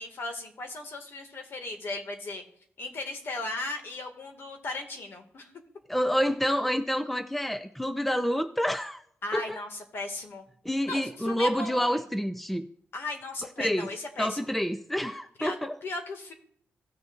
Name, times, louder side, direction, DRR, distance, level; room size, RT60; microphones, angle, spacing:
voice 1, 0.0-2.4 2.8-5.5 9.2-10.5 10.9-12.0 12.9-14.5 15.4-15.6 15.8-16.3, left 2 dB, 60° left, 4 dB, 2.1 m, -37 dB
voice 2, 5.9-9.0 9.3-9.6 10.6-12.7 13.6-13.9 14.2-15.8, equal, 5° left, 9 dB, 0.6 m, -28 dB
17.0 x 6.7 x 2.5 m, 0.63 s
wide cardioid pair, 120°, 4 cm